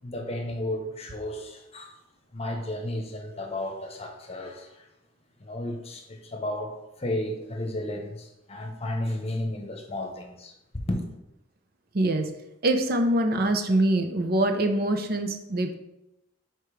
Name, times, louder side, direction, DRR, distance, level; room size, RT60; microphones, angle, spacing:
voice 1, 0.0-2.0 2.3-4.9 5.4-11.0, left 1 dB, 35° left, 1.0 m, -33 dB
voice 2, 11.9-12.3 12.6-15.7, right 1 dB, 55° right, 0.7 m, -24 dB
5.1 x 4.5 x 4.9 m
head